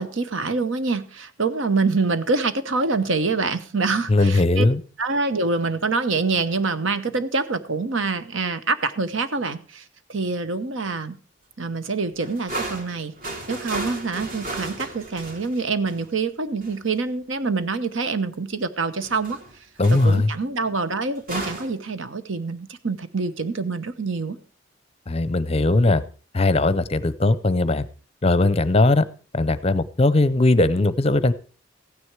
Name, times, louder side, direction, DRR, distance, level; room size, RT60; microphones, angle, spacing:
voice 1, 0.0-4.7 5.0-11.2 11.6-19.7 19.9-24.4, right 4 dB, 75° right, 11 dB, 1.1 m, -26 dB
voice 2, 4.1-4.8 19.8-20.3 25.1-26.0 26.3-27.8 28.2-29.0 29.3-31.3, left 2 dB, 30° left, 16 dB, 0.6 m, -19 dB
sound 1, 12.1-16.2 16.6-16.8 19.0-19.5 19.8-20.2 21.2-21.7, right 2 dB, 45° right, 2.8 m, -34 dB
15.0 x 9.8 x 4.7 m, 0.37 s
head